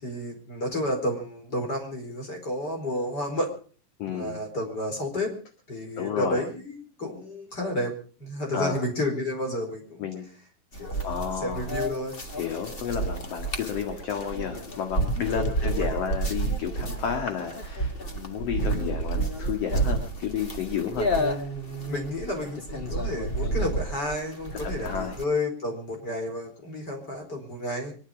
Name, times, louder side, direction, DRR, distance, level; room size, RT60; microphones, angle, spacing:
voice 1, 0.0-3.5 4.1-5.3 5.7-10.1 10.8-12.2 15.3-15.9 21.1-27.9, left 1 dB, 30° left, 2 dB, 4.7 m, -31 dB
voice 2, 4.0-4.4 6.0-6.4 8.5-8.8 10.0-10.3 11.0-11.7 12.4-21.1 24.6-25.1, left 8 dB, 50° left, 4 dB, 2.7 m, -31 dB
sound 1, 10.7-25.2, right 2 dB, 85° left, 0.5 m, -30 dB
24.5 x 11.5 x 5.0 m, 0.40 s
omnidirectional pair, 3.9 m